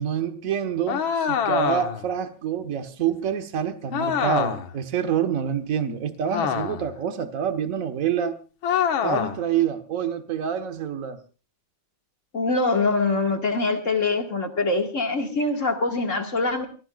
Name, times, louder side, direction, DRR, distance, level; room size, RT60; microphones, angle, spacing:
voice 1, 0.0-8.4 9.0-11.2, right 8 dB, 45° right, 7 dB, 1.5 m, -27 dB
sound 1, 0.9-2.1 3.9-4.7 6.3-7.0 8.6-9.4, left 8 dB, 75° left, 1.9 m, -25 dB
voice 2, 12.3-16.7, left 3 dB, 40° left, 3 dB, 2.2 m, -24 dB
28.5 x 15.5 x 2.4 m, 0.35 s
omnidirectional pair, 2.3 m